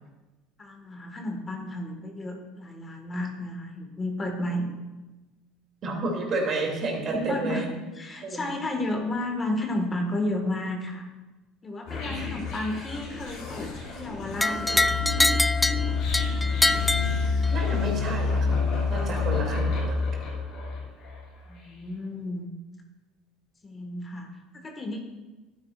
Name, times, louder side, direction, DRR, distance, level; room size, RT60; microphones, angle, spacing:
voice 1, 0.6-4.7 5.9-6.4 7.1-7.6 7.9-11.1 11.6-15.1 19.0-19.1 21.4-22.5 23.6-25.0, left 1 dB, 25° left, 3 dB, 1.7 m, -32 dB
voice 2, 5.8-7.7 8.2-8.4 12.1-12.3 17.5-18.6 18.9-20.0, right 2 dB, 50° right, 0 dB, 2.8 m, -30 dB
sound 1, 11.9-21.1, left 4 dB, 60° left, 2.6 m, -28 dB
sound 2, 14.4-17.8, left 2 dB, 10° left, 0.3 m, -25 dB
12.0 x 9.4 x 2.5 m, 1.1 s
hypercardioid pair, 75°, 0 cm